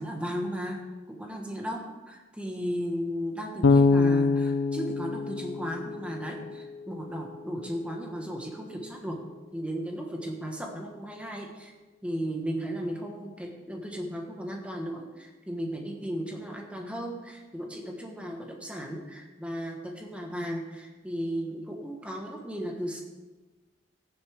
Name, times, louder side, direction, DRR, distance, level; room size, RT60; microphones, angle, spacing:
voice 1, 0.0-9.2 9.5-11.7 12.0-23.0, equal, 5° right, 1 dB, 1.4 m, -35 dB
Bass guitar, 3.6-6.6, left 4 dB, 85° left, 0.6 m, -24 dB
15.0 x 10.0 x 3.6 m, 1.2 s
head